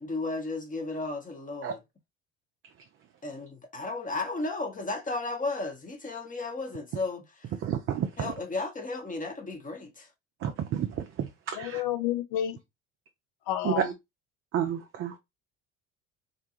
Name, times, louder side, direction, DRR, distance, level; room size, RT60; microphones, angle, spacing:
voice 1, 0.0-1.8 3.2-7.2 8.2-10.1, left 3 dB, 20° left, 0.9 m, -34 dB
voice 2, 7.6-8.3 10.4-11.8 13.6-13.9 14.5-15.2, right 9 dB, 35° right, 0.4 m, -30 dB
voice 3, 11.6-12.6 13.5-13.8, left 11 dB, 60° left, 0.6 m, -30 dB
2.5 x 2.2 x 2.8 m
hypercardioid pair, 60°, 38 cm